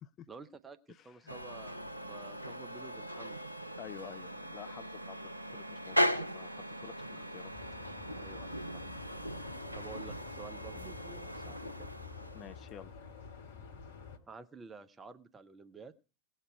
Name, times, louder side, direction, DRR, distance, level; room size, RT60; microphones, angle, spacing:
voice 1, 0.3-0.8 1.0-3.4 7.2-7.4 8.1-8.8 9.7-11.9 14.3-15.9, right 4 dB, 15° right, 10 dB, 0.6 m, -51 dB
voice 2, 0.9-1.4 3.8-5.2 5.5-7.5 12.3-12.9, left 10 dB, 30° left, 13 dB, 0.5 m, -50 dB
sound 1, 1.3-12.6, equal, 90° right, 0.5 m, -38 dB
sound 2, 7.5-14.2, left 5 dB, 60° left, 1.7 m, -49 dB
19.0 x 6.6 x 4.6 m, 0.34 s
figure-of-eight pair, 90°, 0 cm